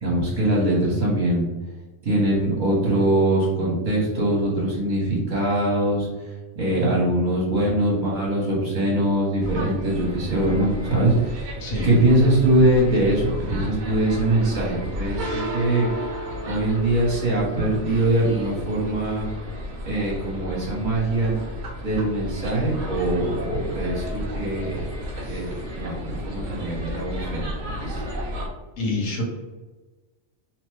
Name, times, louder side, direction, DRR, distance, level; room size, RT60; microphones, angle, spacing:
voice 1, 0.0-1.5 2.0-6.1 6.6-11.5 11.8-16.1 16.5-19.3 19.8-21.3 21.8-24.8 25.3-28.0, right 1 dB, 40° right, -7 dB, 0.9 m, -22 dB
sound 1, 9.4-28.5, equal, 55° right, 0.5 m, -33 dB
voice 2, 28.8-29.2, left 2 dB, 70° left, -1 dB, 1.2 m, -26 dB
2.8 x 2.2 x 3.1 m, 1.2 s
omnidirectional pair, 1.4 m